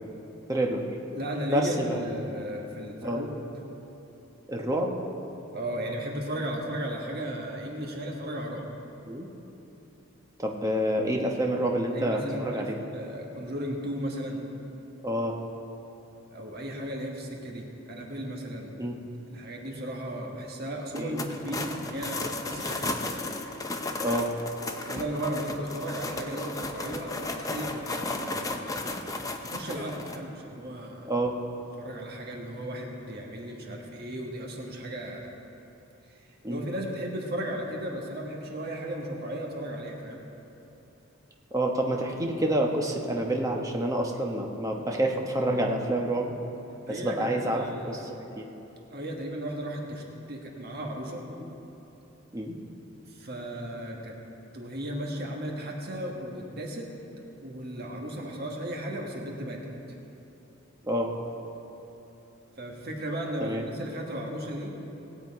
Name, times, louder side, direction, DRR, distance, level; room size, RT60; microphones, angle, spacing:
voice 1, 0.5-0.8 1.5-2.0 3.0-3.2 4.5-4.9 9.0-9.3 10.4-12.8 15.0-15.4 18.8-18.9 20.9-21.2 24.0-24.3 31.1-31.4 36.4-36.6 41.5-46.3 46.9-48.0 48.4-48.5 51.3-51.5 52.3-52.5 60.8-61.1 63.4-63.6, right 1 dB, 15° right, 0 dB, 1.1 m, -28 dB
voice 2, 1.1-3.3 5.5-8.7 11.9-14.4 16.3-18.7 19.3-23.0 24.9-28.6 29.4-31.1 31.8-35.3 36.1-40.2 46.8-48.1 48.9-51.2 53.1-54.1 54.5-56.9 57.4-59.6 62.6-64.7, right 1 dB, 50° right, 0 dB, 1.5 m, -35 dB
sound 1, 20.9-30.2, left 2 dB, 15° left, 0.6 m, -34 dB
19.0 x 8.1 x 4.7 m, 3.0 s
head